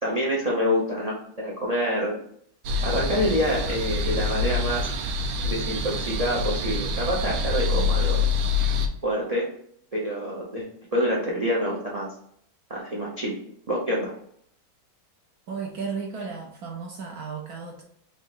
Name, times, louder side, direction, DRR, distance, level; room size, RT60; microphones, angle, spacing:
voice 1, 0.0-2.2 2.8-4.9 5.4-8.2 9.0-9.5 9.9-10.7 10.9-12.1 12.7-13.4 13.7-14.1, equal, 45° right, -3 dB, 0.4 m, -26 dB
sound 1, 2.6-8.9, left 3 dB, 90° right, 1.2 m, -26 dB
voice 2, 15.5-17.8, right 5 dB, 65° right, 0 dB, 1.1 m, -34 dB
3.9 x 2.6 x 3.7 m, 0.66 s
omnidirectional pair, 1.8 m